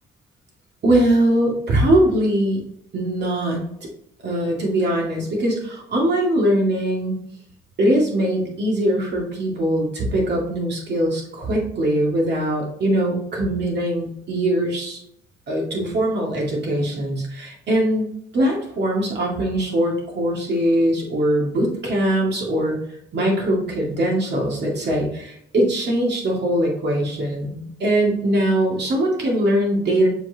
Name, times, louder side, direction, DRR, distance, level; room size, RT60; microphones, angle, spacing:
voice 1, 0.8-2.6 2.9-3.6 4.2-7.2 7.8-15.0 15.5-22.8 23.1-30.1, right 1 dB, 60° right, -1 dB, 2.2 m, -21 dB
7.3 x 4.5 x 2.9 m, 0.72 s
cardioid pair, 90°, 20 cm